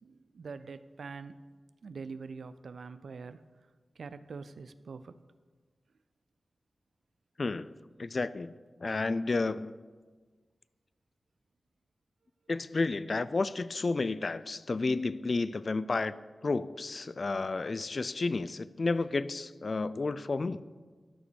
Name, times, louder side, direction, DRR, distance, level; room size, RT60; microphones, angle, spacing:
voice 1, 0.0-1.4 1.8-3.4 4.0-5.2, right 4 dB, 85° right, 13 dB, 0.4 m, -44 dB
voice 2, 8.0-8.5 8.8-9.8 12.5-16.2 16.4-20.6, left 3 dB, 50° left, 16 dB, 0.3 m, -31 dB
11.5 x 5.0 x 6.3 m, 1.4 s
wide cardioid pair, 80°, 0 cm